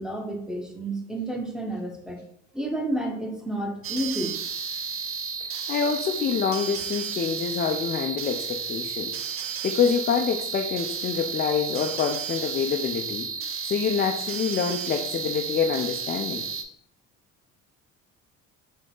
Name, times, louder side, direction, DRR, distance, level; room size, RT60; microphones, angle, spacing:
voice 1, 0.0-2.2 2.5-4.4, right 1 dB, ahead, 2 dB, 0.8 m, -30 dB
sound 1, 3.8-16.6, right 6 dB, 40° right, 0.6 m, -32 dB
voice 2, 5.5-9.2 9.6-13.3 13.6-16.5, left 6 dB, 30° left, 4 dB, 0.4 m, -26 dB
3.9 x 2.8 x 3.6 m, 0.70 s
supercardioid pair, 90°, 33 cm